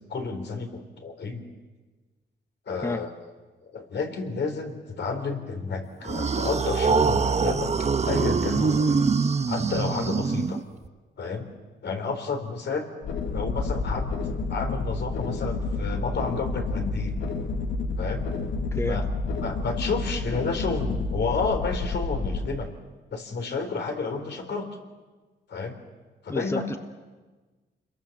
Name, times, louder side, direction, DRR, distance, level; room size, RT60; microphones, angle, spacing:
voice 1, 0.0-1.4 2.7-3.1 3.7-7.7 8.0-9.1 9.5-10.6 11.2-11.5 11.8-12.9 13.3-14.1 14.5-17.1 18.0-18.2 18.9-19.0 19.4-22.7 23.1-24.7 25.5-25.8 26.2-26.6, left 4 dB, 65° left, 4 dB, 4.1 m, -31 dB
sound 1, 6.0-10.9, right 5 dB, 35° right, 1.1 m, -24 dB
sound 2, 13.0-22.5, left 3 dB, 85° left, 2.1 m, -29 dB
voice 2, 18.7-19.0 26.3-26.8, left 2 dB, 15° left, 8 dB, 1.1 m, -30 dB
29.0 x 22.5 x 7.4 m, 1.3 s
cardioid pair, 95°, 19 cm